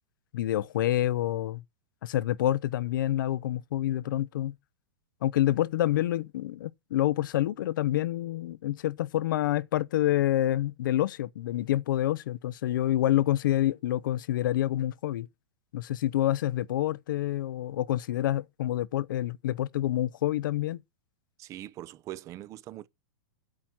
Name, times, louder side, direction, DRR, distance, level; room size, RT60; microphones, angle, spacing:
voice 1, 0.3-1.6 2.0-4.5 5.2-15.3 15.7-20.8, left 13 dB, 70° left, 0.6 m, -27 dB
voice 2, 21.4-22.9, right 14 dB, 30° right, 0.6 m, -42 dB
8.6 x 7.8 x 5.8 m
hypercardioid pair, 140°, 11 cm